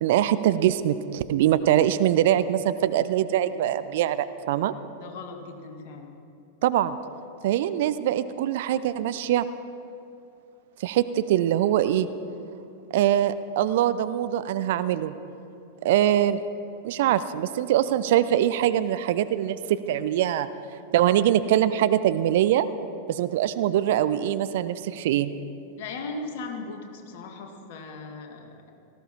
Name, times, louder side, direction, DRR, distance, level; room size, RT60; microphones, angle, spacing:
voice 1, 0.0-4.7 6.6-7.0 7.4-9.5 10.8-12.1 12.9-15.1 15.8-16.4 16.8-20.5 20.9-22.7 23.1-25.3, right 11 dB, 55° right, 14 dB, 0.5 m, -23 dB
voice 2, 5.0-6.2 25.8-28.5, left 3 dB, 50° left, 4 dB, 1.9 m, -38 dB
18.0 x 15.0 x 4.4 m, 2.6 s
figure-of-eight pair, 90°, 0 cm